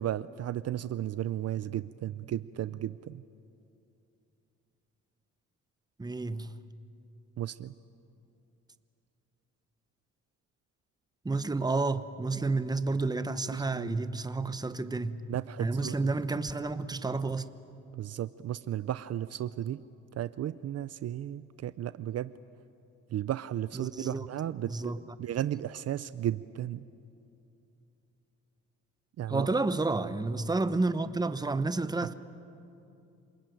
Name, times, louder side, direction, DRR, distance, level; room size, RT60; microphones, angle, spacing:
voice 1, 0.0-3.2 7.4-7.7 13.5-14.0 15.3-16.0 18.0-19.8 20.2-22.3 23.1-26.8 29.2-29.5, right 12 dB, 55° right, 0.6 m, -34 dB
voice 2, 6.0-6.6 11.2-15.2 15.6-17.5 23.7-24.3 24.6-25.0 29.3-32.1, right 3 dB, 15° right, 1.0 m, -30 dB
27.5 x 20.0 x 9.1 m
cardioid pair, 90°, 30 cm